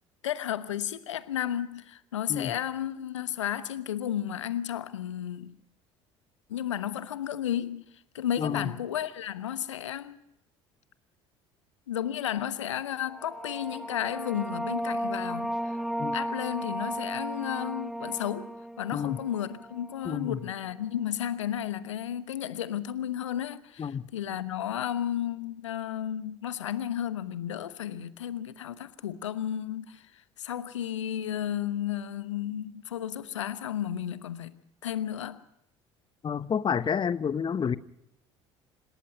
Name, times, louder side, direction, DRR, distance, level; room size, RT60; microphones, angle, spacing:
voice 1, 0.2-5.5 6.5-7.8 8.1-10.2 11.9-15.8 16.1-35.4, left 10 dB, 75° left, 1.0 m, -33 dB
voice 2, 8.4-8.7 16.0-16.2 18.9-19.2 20.0-20.4 23.8-24.1 36.2-37.8, left 7 dB, 30° left, 1.0 m, -29 dB
sound 1, 13.0-20.3, equal, ahead, 0.8 m, -35 dB
27.5 x 18.0 x 5.4 m
figure-of-eight pair, 60°, 16 cm